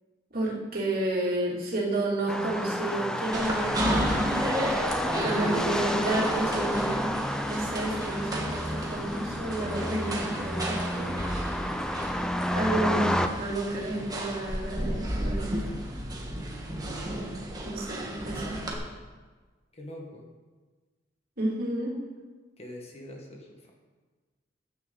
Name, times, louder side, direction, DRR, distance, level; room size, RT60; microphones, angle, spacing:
voice 1, 0.3-4.7 5.2-7.1 7.5-12.0 12.5-15.7 17.6-18.6 21.4-22.0, right 1 dB, 50° right, -4 dB, 3.2 m, -31 dB
sound 1, 2.3-13.3, equal, 5° left, 0.6 m, -30 dB
sound 2, 3.3-18.7, equal, 20° right, 1.6 m, -33 dB
voice 2, 5.1-5.5 19.7-20.2 22.6-23.7, left 1 dB, 35° left, 0 dB, 1.7 m, -42 dB
15.0 x 10.0 x 4.1 m, 1.4 s
head